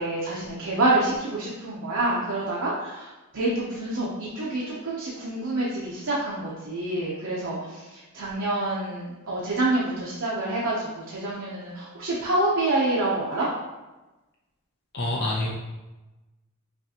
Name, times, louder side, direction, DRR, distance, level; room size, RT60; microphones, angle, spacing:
voice 1, 0.0-13.5, right 2 dB, 75° right, -6 dB, 0.7 m, -27 dB
voice 2, 14.9-15.5, left 1 dB, 50° left, -3 dB, 0.7 m, -26 dB
5.7 x 2.4 x 2.8 m, 1.1 s
head